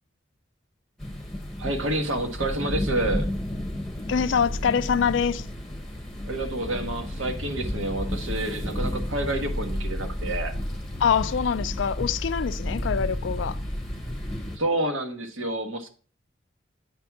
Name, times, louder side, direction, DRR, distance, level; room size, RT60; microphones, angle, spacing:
sound 1, 1.0-14.6, left 1 dB, ahead, 1.1 m, -31 dB
voice 1, 1.6-3.3 6.3-10.5 14.6-15.9, right 1 dB, 85° right, 1.2 m, -29 dB
voice 2, 4.1-5.5 11.0-13.6, left 7 dB, 70° left, 0.4 m, -24 dB
8.7 x 3.5 x 5.9 m
head